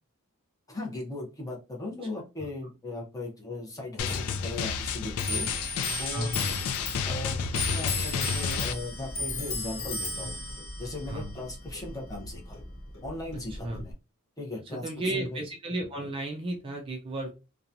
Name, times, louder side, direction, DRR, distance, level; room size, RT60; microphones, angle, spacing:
voice 1, 0.7-5.5 6.0-6.3 7.0-10.4 10.8-12.6 13.0-13.9 14.4-15.4, left 2 dB, 15° left, -1 dB, 0.7 m, -38 dB
Drum, 4.0-8.7, left 6 dB, 90° left, 0.4 m, -31 dB
Clock, 4.1-13.9, left 2 dB, 70° left, 1.1 m, -36 dB
voice 2, 6.1-6.6 11.1-11.3 13.6-13.8 14.8-17.3, right 2 dB, 25° right, 1 dB, 0.3 m, -33 dB
2.8 x 2.2 x 2.5 m, 0.29 s
head